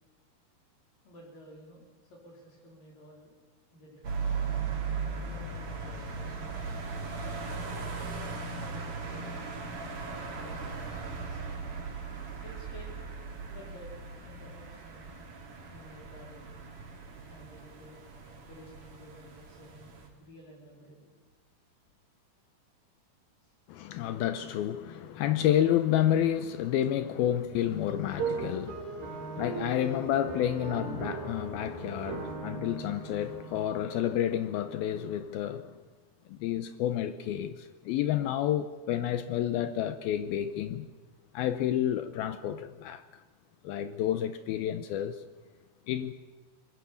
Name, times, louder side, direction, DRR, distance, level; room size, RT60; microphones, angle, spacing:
voice 1, 1.0-3.4 3.7-4.4 5.2-6.8 7.4-8.0 8.6-9.8 10.4-11.5 12.4-13.1 13.5-15.1 15.7-16.6 17.3-18.0 18.5-21.1 23.4-23.5, equal, 55° left, 5.3 m, -52 dB
sound 1, 4.0-20.1, right 4 dB, 50° right, 4.6 m, -38 dB
voice 2, 23.7-35.8 36.3-40.9 41.3-43.0 43.6-45.2 45.9-46.1, left 11 dB, 75° left, 2.5 m, -30 dB
sound 2, 28.1-34.0, right 4 dB, 85° right, 8.6 m, -38 dB
25.0 x 21.5 x 7.1 m
omnidirectional pair, 4.7 m